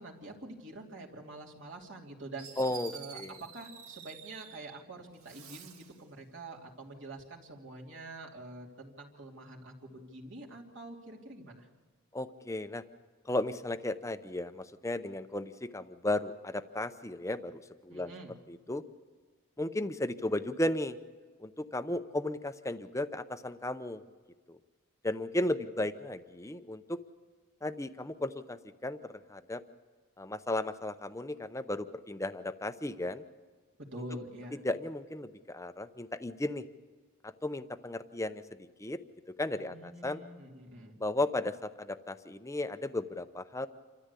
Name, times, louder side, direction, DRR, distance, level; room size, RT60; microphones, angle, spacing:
voice 1, 0.0-2.5 2.9-11.7 17.9-18.4 33.8-34.6 39.5-41.0, right 2 dB, 55° right, -1 dB, 3.0 m, -46 dB
Fireworks, 2.4-4.8 5.2-6.0, right 7 dB, 75° right, 1.8 m, -49 dB
voice 2, 2.6-3.3 12.1-12.8 13.3-18.1 18.5-18.8 19.6-21.0 21.4-24.0 24.5-24.6 25.0-27.0 27.6-28.6 28.8-29.0 29.3-29.6 30.2-33.2 34.6-36.6 37.4-38.4 38.8-39.0 39.4-40.2 41.0-43.7, left 1 dB, 15° left, 11 dB, 0.7 m, -35 dB
27.5 x 13.5 x 8.3 m, 1.5 s
head